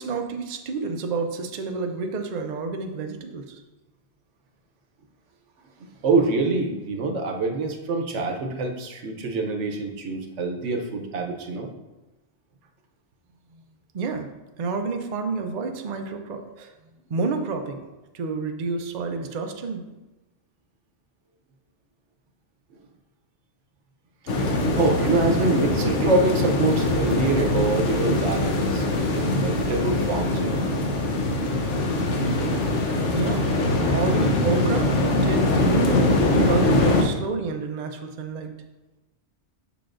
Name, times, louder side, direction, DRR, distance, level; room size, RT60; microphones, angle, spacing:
voice 1, 0.0-3.6 13.9-14.3 14.6-16.7 17.1-17.8 18.1-19.8 33.1-33.5 33.8-34.9 35.2-36.1 36.4-38.5, right 4 dB, 50° right, 4 dB, 0.6 m, -29 dB
voice 2, 6.0-11.7 24.8-30.7, right 3 dB, 85° right, 3 dB, 1.1 m, -25 dB
sound 1, 24.3-37.0, left 2 dB, 85° left, 1.1 m, -22 dB
6.9 x 5.8 x 2.5 m, 1.1 s
omnidirectional pair, 1.2 m